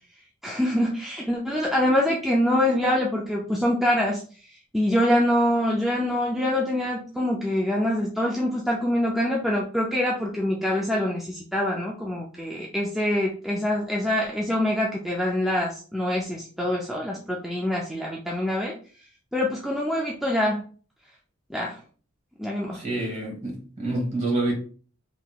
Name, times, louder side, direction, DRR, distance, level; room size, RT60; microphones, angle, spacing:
voice 1, 0.4-4.2 4.7-18.7 19.3-20.6 21.5-21.8 22.4-22.8, left 1 dB, ahead, 0.4 m, -25 dB
voice 2, 22.7-24.5, right 2 dB, 35° right, 1.4 m, -27 dB
3.6 x 2.9 x 2.4 m
head